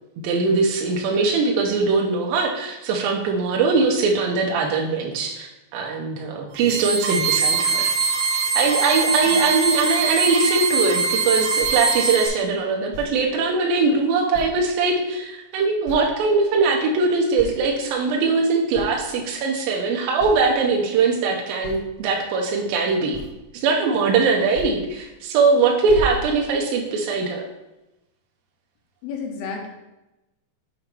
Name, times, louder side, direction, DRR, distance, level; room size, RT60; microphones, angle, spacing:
voice 1, 0.2-7.9 8.6-23.2 23.5-27.4, right 4 dB, 85° right, 0 dB, 2.5 m, -21 dB
sound 1, 6.5-12.3, right 4 dB, 60° right, 2.6 m, -22 dB
sound 2, 11.6-11.8 12.9-13.1 14.3-14.7 15.2-15.3 15.8-16.2 16.6-17.0 17.4-17.7 18.3-18.4 18.7-19.0 19.8-19.9 20.2-20.4 21.6-21.9 23.1-23.5 24.5-24.8 25.2-25.5 25.9-26.8, right 1 dB, 50° left, 1.7 m, -34 dB
voice 2, 29.0-29.7, left 5 dB, 80° left, 1 dB, 2.8 m, -31 dB
7.0 x 2.9 x 6.0 m, 0.99 s
omnidirectional pair, 4.1 m